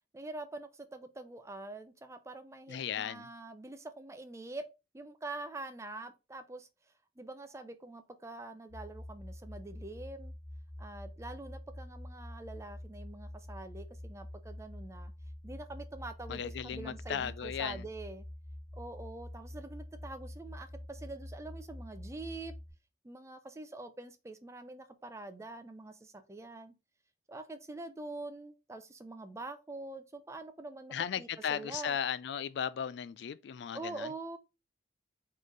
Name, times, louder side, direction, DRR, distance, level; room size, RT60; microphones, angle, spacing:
voice 1, 0.1-4.6 4.9-6.7 7.2-10.3 10.8-15.1 15.4-18.3 18.7-22.5 23.0-26.7 27.3-32.0 33.7-34.4, right 2 dB, 15° right, 0.4 m, -45 dB
voice 2, 2.7-3.3 16.3-17.9 30.9-34.1, left 8 dB, 65° left, 0.3 m, -36 dB
sound 1, 8.7-22.7, left 1 dB, 30° left, 1.7 m, -46 dB
4.2 x 3.2 x 3.8 m
head